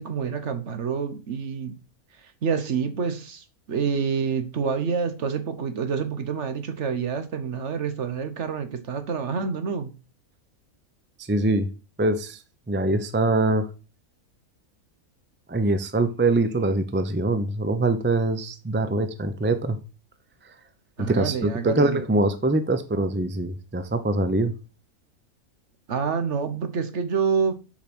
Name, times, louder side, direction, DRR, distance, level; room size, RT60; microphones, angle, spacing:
voice 1, 0.0-1.8 2.2-9.9 21.0-22.0 25.9-27.5, right 6 dB, 55° right, 1.2 m, -27 dB
voice 2, 11.2-11.7 12.0-12.4 12.7-13.7 15.5-19.8 21.0-24.5, right 2 dB, 15° right, 0.4 m, -23 dB
6.9 x 5.1 x 6.1 m
omnidirectional pair, 1.5 m